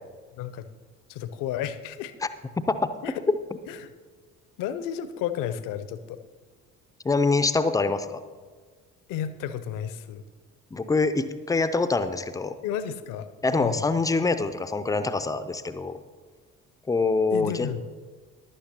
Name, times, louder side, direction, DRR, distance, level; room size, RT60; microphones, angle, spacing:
voice 1, 0.3-0.7 1.1-2.1 3.0-3.2 3.7-3.9 4.6-6.2 9.1-10.2 12.6-13.3 13.6-13.8 17.3-17.8, left 9 dB, 50° left, 12 dB, 0.7 m, -32 dB
voice 2, 7.0-8.2 10.7-12.6 13.4-16.0 16.9-17.7, left 3 dB, 10° left, 11 dB, 0.5 m, -25 dB
15.5 x 11.5 x 2.8 m, 1.5 s
figure-of-eight pair, 50°, 42 cm